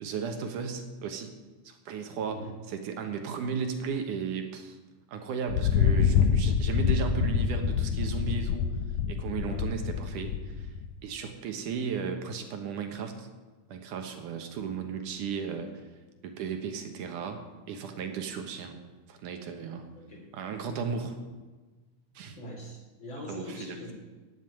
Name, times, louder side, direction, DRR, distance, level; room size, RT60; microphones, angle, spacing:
voice 1, 0.0-1.3 1.6-4.8 5.1-8.7 9.1-10.7 11.0-13.3 13.7-15.9 16.2-18.8 19.1-19.9 20.3-21.2 22.2-22.4 23.3-23.8, right 6 dB, 75° right, 5 dB, 2.6 m, -35 dB
Thunder, 5.5-11.0, left 7 dB, 75° left, 2.0 m, -26 dB
voice 2, 19.9-20.3 22.4-23.9, equal, 35° left, -1 dB, 4.0 m, -42 dB
15.5 x 7.2 x 9.6 m, 1.3 s
omnidirectional pair, 3.8 m